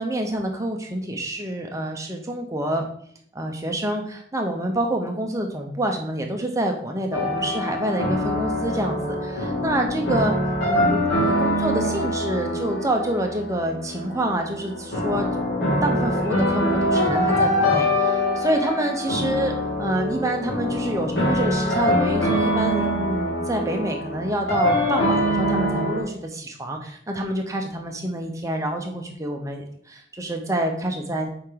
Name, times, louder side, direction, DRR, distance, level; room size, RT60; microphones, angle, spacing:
voice 1, 0.0-2.9 3.3-10.3 10.6-15.3 15.6-31.3, right 1 dB, 15° right, 2 dB, 0.9 m, -27 dB
sound 1, 7.1-26.0, left 1 dB, 85° left, 2.8 m, -24 dB
7.2 x 4.8 x 4.0 m, 0.64 s
head